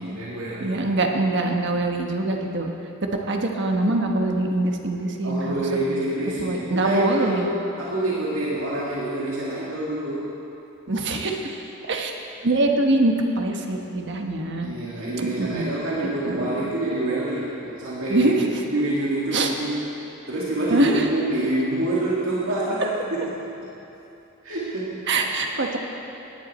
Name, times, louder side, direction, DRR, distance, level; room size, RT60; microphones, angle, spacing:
voice 1, 0.0-0.8 3.1-3.2 5.2-10.4 14.6-18.3 18.7-19.9 20.3-23.5 24.4-25.0, right 1 dB, 90° right, -6 dB, 2.1 m, -27 dB
voice 2, 0.6-2.7 3.3-5.8 6.4-7.5 10.9-12.2 12.4-14.7 15.2-15.7 16.0-16.7 18.1-18.5 19.3-19.5 20.7-21.1 25.1-25.8, right 2 dB, 60° right, 3 dB, 1.2 m, -24 dB
18.5 x 10.5 x 4.3 m, 2.9 s
head